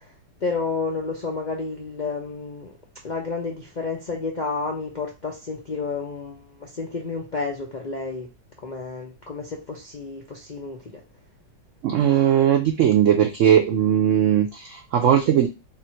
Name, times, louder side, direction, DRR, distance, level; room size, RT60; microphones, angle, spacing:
voice 1, 0.4-2.7 3.0-8.3 8.6-10.8, left 4 dB, 80° left, 0 dB, 0.4 m, -30 dB
voice 2, 11.8-15.5, right 9 dB, 90° right, 5 dB, 0.6 m, -19 dB
3.5 x 2.6 x 4.3 m, 0.28 s
omnidirectional pair, 1.9 m